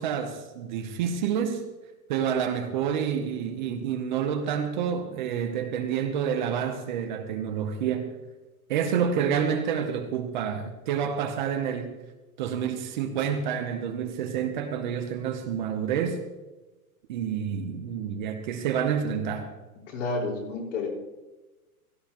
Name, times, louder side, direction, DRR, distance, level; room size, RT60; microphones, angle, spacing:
voice 1, 0.0-1.6 2.1-8.1 8.7-11.9 12.4-16.2 17.1-19.5, right 8 dB, 30° right, 0.8 m, -28 dB
voice 2, 19.9-20.9, left 3 dB, 55° left, 4.8 m, -30 dB
16.5 x 14.0 x 3.0 m
hypercardioid pair, 165°, 45 cm